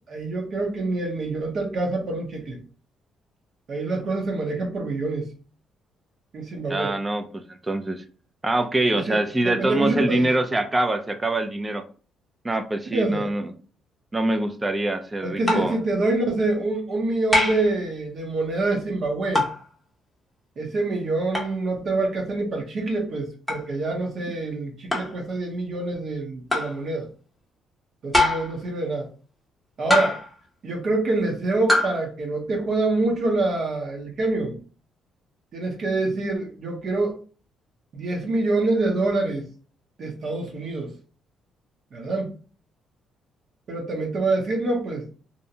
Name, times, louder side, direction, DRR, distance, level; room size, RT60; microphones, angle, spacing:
voice 1, 0.1-2.6 3.7-5.3 6.3-6.9 9.1-9.2 9.6-10.3 12.9-13.3 15.2-19.4 20.6-27.1 28.0-29.1 29.8-30.2 30.6-34.6 35.5-37.2 37.9-39.4 40.0-40.9 41.9-42.3 43.7-45.0, right 2 dB, 50° right, 0 dB, 0.7 m, -26 dB
voice 2, 6.7-8.0 8.4-11.8 12.4-13.5 14.1-15.8, right 2 dB, 15° right, 8 dB, 0.4 m, -24 dB
sound 1, 15.5-15.8 17.3-17.7 19.3-19.6 21.3-21.5 23.5-23.6 24.9-25.2 26.5-26.8 28.1-28.6 29.9-30.3 31.7-32.0, left 2 dB, 5° left, 0.7 m, -23 dB
2.6 x 2.1 x 2.7 m, 0.39 s
cardioid pair, 120°, 0 cm